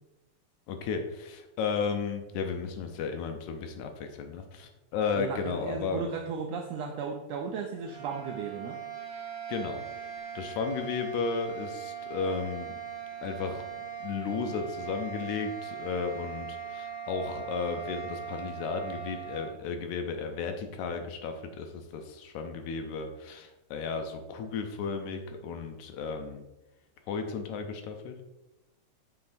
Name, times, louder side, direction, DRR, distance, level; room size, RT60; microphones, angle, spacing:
voice 1, 0.7-6.1 9.5-9.8 10.4-12.8 13.2-13.6 14.0-26.4 27.1-28.2, left 5 dB, 75° left, 6 dB, 2.0 m, -34 dB
voice 2, 5.2-8.8, right 5 dB, 85° right, 2 dB, 1.5 m, -35 dB
sound 1, 7.7-19.6, right 8 dB, 10° right, 1.0 m, -40 dB
7.5 x 5.9 x 2.6 m, 0.98 s
omnidirectional pair, 3.5 m